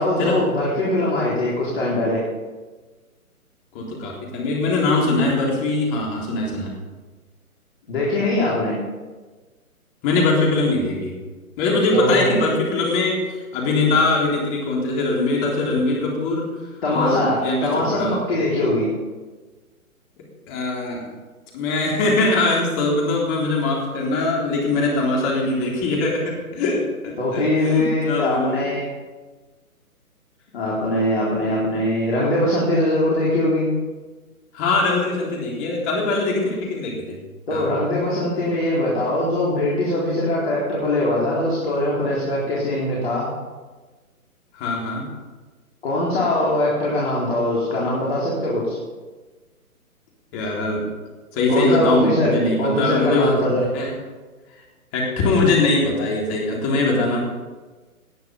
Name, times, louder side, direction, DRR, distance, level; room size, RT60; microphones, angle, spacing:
voice 1, 0.0-2.2 7.9-8.8 11.9-12.2 16.8-17.4 17.6-18.9 27.2-28.9 30.5-33.7 37.5-43.3 45.8-48.8 51.5-52.3 52.6-53.6, left 1 dB, 45° left, -5 dB, 4.1 m, -21 dB
voice 2, 3.7-6.7 10.0-11.2 11.6-16.4 16.9-18.2 20.5-21.0 21.5-28.6 34.5-37.1 37.5-37.7 44.5-45.1 50.3-50.8 51.3-53.4 53.7-53.9 54.9-57.2, left 2 dB, 20° left, -2 dB, 3.7 m, -22 dB
18.5 x 9.5 x 5.3 m, 1.3 s
figure-of-eight pair, 135°, 44 cm